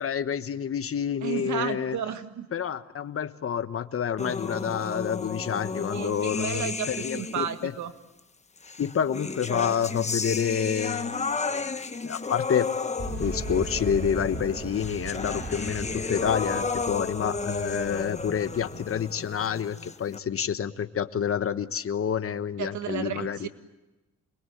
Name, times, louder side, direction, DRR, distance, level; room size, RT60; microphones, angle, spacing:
voice 1, 0.0-2.0 2.5-7.7 8.8-11.4 12.0-12.7 13.2-23.5, left 8 dB, 45° left, 12 dB, 1.2 m, -28 dB
voice 2, 1.2-2.5 5.9-7.9 22.6-23.5, right 9 dB, 75° right, 9 dB, 1.9 m, -33 dB
sound 1, 4.2-7.6 8.6-20.2, left 4 dB, 20° left, 1.2 m, -33 dB
Boom, 13.0-19.5, right 2 dB, 45° right, 7.4 m, -38 dB
27.5 x 22.0 x 9.3 m, 1.0 s
cardioid pair, 90°, 30 cm